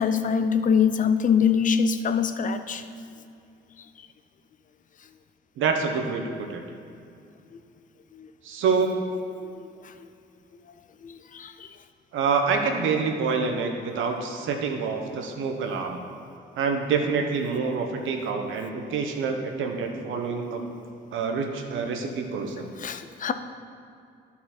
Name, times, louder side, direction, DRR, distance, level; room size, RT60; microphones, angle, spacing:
voice 1, 0.0-2.9 7.5-7.6 8.1-8.3 9.4-10.1 11.0-11.7 22.8-23.3, left 6 dB, 40° left, 10 dB, 0.5 m, -24 dB
voice 2, 5.6-6.2 6.5-6.6 8.4-8.9 12.1-16.0 16.6-20.6 21.1-22.7, right 5 dB, 80° right, 3 dB, 1.0 m, -26 dB
11.5 x 4.2 x 4.3 m, 2.5 s
cardioid pair, 90°, 20 cm